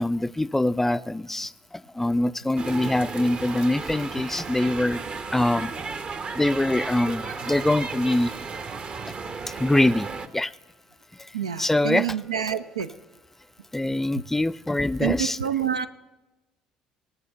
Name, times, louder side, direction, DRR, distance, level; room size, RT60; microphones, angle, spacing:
voice 1, 0.0-5.0 5.3-5.7 6.3-8.3 9.6-10.5 11.2-11.3 11.6-12.2 13.7-15.4, left 1 dB, 10° left, 15 dB, 0.4 m, -24 dB
sound 1, 2.6-10.3, right 4 dB, 35° right, 0.8 m, -34 dB
voice 2, 11.3-12.9 15.0-15.9, right 9 dB, 80° right, 10 dB, 0.4 m, -27 dB
18.5 x 6.8 x 6.8 m, 1.1 s
figure-of-eight pair, 55°, 3 cm